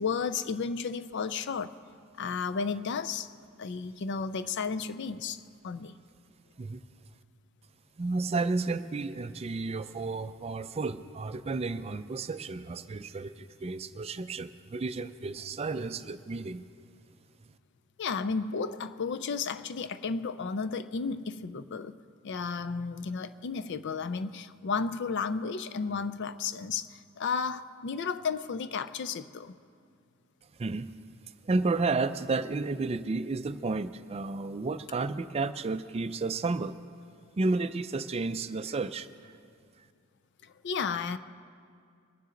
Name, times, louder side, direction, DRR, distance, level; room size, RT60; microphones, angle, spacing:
voice 1, 0.0-1.7 2.2-3.3 3.6-6.0 18.0-22.0 22.2-29.5 40.4-41.2, left 5 dB, 55° left, 13 dB, 0.4 m, -33 dB
voice 2, 8.0-16.6 30.6-30.9 31.4-36.8 37.4-39.3, right 3 dB, 30° right, 12 dB, 0.4 m, -32 dB
22.0 x 9.5 x 3.8 m, 2.3 s
head